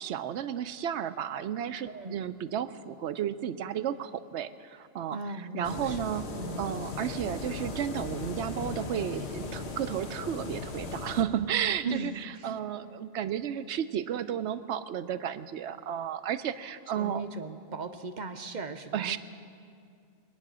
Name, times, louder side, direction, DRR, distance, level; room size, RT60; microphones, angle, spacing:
voice 1, 0.0-6.3 6.6-17.2 18.9-19.2, right 9 dB, 75° right, 12 dB, 0.9 m, -33 dB
voice 2, 5.1-6.0 6.4-6.6 11.8-12.5 17.0-19.2, right 3 dB, 45° right, 8 dB, 0.7 m, -38 dB
sound 1, 5.6-11.2, left 3 dB, 70° left, 1.3 m, -37 dB
23.0 x 9.6 x 6.2 m, 2.3 s
omnidirectional pair, 1.2 m